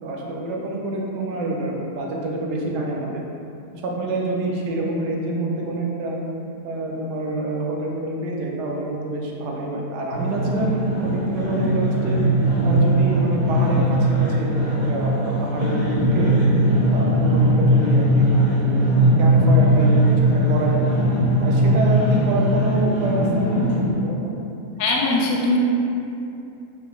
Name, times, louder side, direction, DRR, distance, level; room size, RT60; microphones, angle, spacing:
voice 1, 0.0-3.2 3.8-6.2 6.6-12.2 12.6-16.3 16.9-20.8 21.4-23.7 24.0-24.3, right 2 dB, 80° right, -1 dB, 1.2 m, -27 dB
sound 1, 10.1-23.9, right 1 dB, 25° right, 1.3 m, -19 dB
voice 2, 24.8-25.6, left 3 dB, 70° left, -2 dB, 0.9 m, -20 dB
4.8 x 3.3 x 2.3 m, 2.8 s
omnidirectional pair, 1.7 m